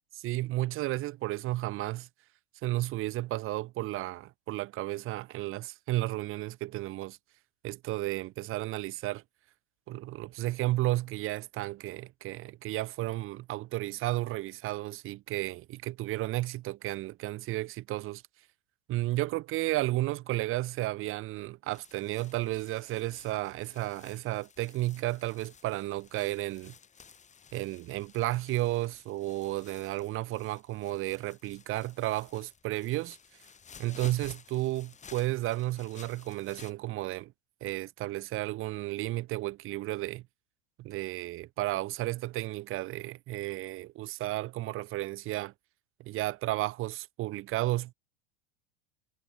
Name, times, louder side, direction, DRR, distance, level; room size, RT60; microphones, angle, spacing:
voice 1, 0.1-2.1 2.6-7.2 7.6-9.2 9.9-18.2 18.9-26.7 27.5-33.2 33.8-37.3 37.6-40.2 40.8-45.5 46.0-47.9, right 17 dB, 45° right, 3.2 m, -33 dB
sound 1, 21.7-36.7, left 6 dB, 25° left, 7.0 m, -55 dB
hypercardioid pair, 90°, 29 cm